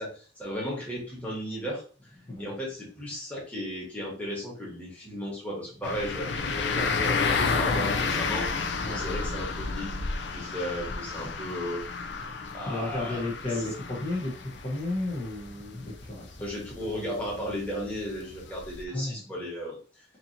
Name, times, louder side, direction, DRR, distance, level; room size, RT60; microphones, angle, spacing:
voice 1, 0.0-1.8 2.4-8.5 8.8-10.0 10.3-11.8 12.5-13.2 16.4-20.0, equal, 10° left, -5 dB, 1.5 m, -35 dB
sound 1, 5.8-18.8, left 4 dB, 65° left, 0.5 m, -31 dB
voice 2, 12.4-16.6 18.9-19.2, left 2 dB, 30° left, -5 dB, 1.0 m, -33 dB
4.4 x 2.8 x 2.7 m, 0.39 s
head